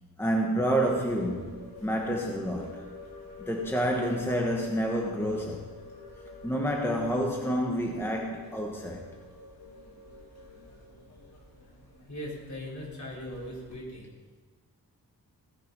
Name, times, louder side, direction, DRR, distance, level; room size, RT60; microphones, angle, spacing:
voice 1, 0.2-2.8 3.5-5.7 6.4-9.1, equal, 5° left, 0 dB, 1.3 m, -29 dB
sound 1, 0.8-13.8, left 2 dB, 75° left, 3.7 m, -48 dB
voice 2, 12.1-14.1, left 1 dB, 50° left, -4 dB, 4.5 m, -39 dB
17.0 x 10.5 x 5.4 m, 1.4 s
wide cardioid pair, 135°, 37 cm